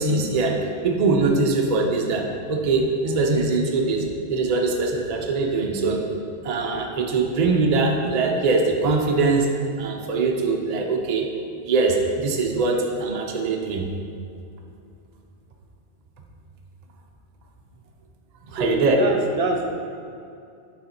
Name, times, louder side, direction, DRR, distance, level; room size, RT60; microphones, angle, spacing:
voice 1, 0.0-4.0 4.3-6.0 6.4-9.5 9.8-11.3 11.6-13.9 18.4-19.1, right 3 dB, 45° right, 1 dB, 0.6 m, -22 dB
voice 2, 18.6-19.8, right 2 dB, 75° right, 3 dB, 0.9 m, -25 dB
6.5 x 4.0 x 4.2 m, 2.5 s
omnidirectional pair, 1.1 m